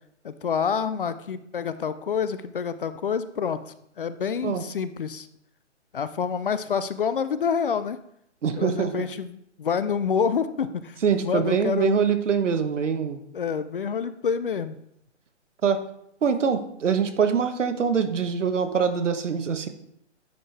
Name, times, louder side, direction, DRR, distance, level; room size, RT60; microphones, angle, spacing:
voice 1, 0.2-5.3 5.9-8.0 8.6-12.0 13.3-14.8, left 6 dB, 50° left, 13 dB, 0.4 m, -27 dB
voice 2, 8.4-8.9 11.0-13.2 15.6-15.8 16.2-19.7, right 6 dB, 80° right, 7 dB, 1.2 m, -24 dB
9.9 x 4.5 x 3.3 m, 0.73 s
hypercardioid pair, 165°, 36 cm